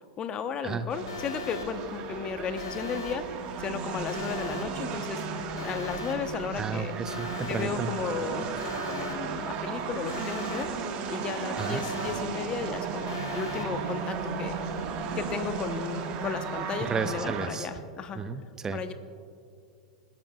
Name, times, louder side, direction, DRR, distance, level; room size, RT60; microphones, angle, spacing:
voice 1, 0.2-3.3 3.6-5.2 5.6-6.9 7.5-8.5 8.8-10.7 11.1-14.6 15.2-18.2 18.7-18.9, left 6 dB, 30° left, 9 dB, 1.0 m, -34 dB
sound 1, 0.9-17.5, right 5 dB, 40° right, 1.6 m, -35 dB
Alarm, 1.1-1.7 2.6-3.2 4.1-4.7 5.6-6.2 7.1-7.7 8.6-9.2 10.1-10.7 11.6-12.2 13.1-13.7, left 4 dB, 75° left, 2.1 m, -39 dB
voice 2, 6.6-7.9 11.6-11.9 16.8-17.7 18.1-18.8, right 5 dB, 20° right, 11 dB, 0.7 m, -32 dB
26.5 x 12.0 x 2.4 m, 2.4 s
figure-of-eight pair, 90°, 3 cm